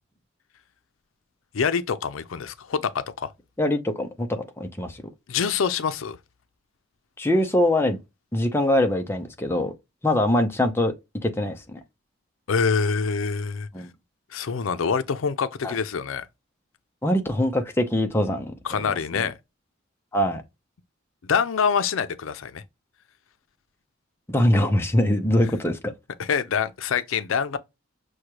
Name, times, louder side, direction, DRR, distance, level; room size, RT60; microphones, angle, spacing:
voice 1, 1.5-3.3 5.3-6.2 12.5-13.7 14.3-16.3 18.6-19.3 21.2-22.6 26.2-27.6, left 6 dB, 85° left, 0.5 m, -25 dB
voice 2, 3.6-5.0 7.2-8.0 8.3-9.7 10.0-10.9 11.2-11.8 13.7-13.9 15.6-15.8 17.0-19.0 20.1-20.4 24.3-25.9, left 1 dB, 10° left, 0.5 m, -23 dB
6.3 x 2.2 x 2.9 m
head